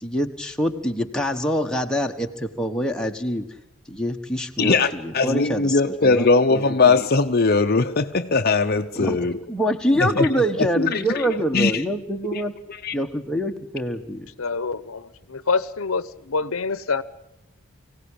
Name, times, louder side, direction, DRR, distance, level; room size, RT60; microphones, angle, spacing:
voice 1, 0.0-3.5 3.9-6.9 8.9-12.5 12.9-14.3, equal, 5° left, 2 dB, 1.4 m, -25 dB
voice 2, 4.6-9.4 10.0-10.3 10.6-11.1 11.5-11.8 12.3-12.4 12.8-12.9, left 4 dB, 45° left, 7 dB, 0.8 m, -20 dB
voice 3, 14.4-17.0, left 4 dB, 70° left, 16 dB, 0.9 m, -26 dB
24.5 x 17.0 x 8.7 m, 0.97 s
head